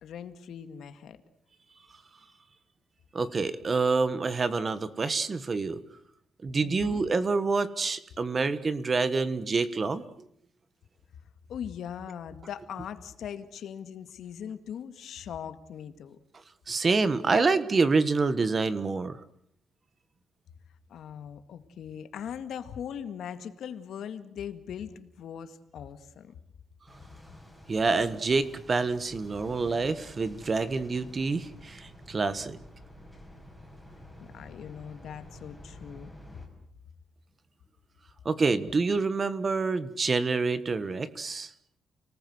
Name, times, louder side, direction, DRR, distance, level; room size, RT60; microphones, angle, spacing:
voice 1, 0.0-1.2 6.6-7.0 11.5-16.2 20.9-26.3 34.2-36.1, left 8 dB, 70° left, 10 dB, 2.0 m, -40 dB
voice 2, 3.1-5.8 6.4-10.0 16.7-19.2 27.7-32.6 38.2-41.5, right 4 dB, 30° right, 14 dB, 1.4 m, -27 dB
sound 1, 26.9-36.5, left 1 dB, 5° right, 5.3 m, -50 dB
30.0 x 19.0 x 8.0 m, 0.70 s
wide cardioid pair, 160°, 0 cm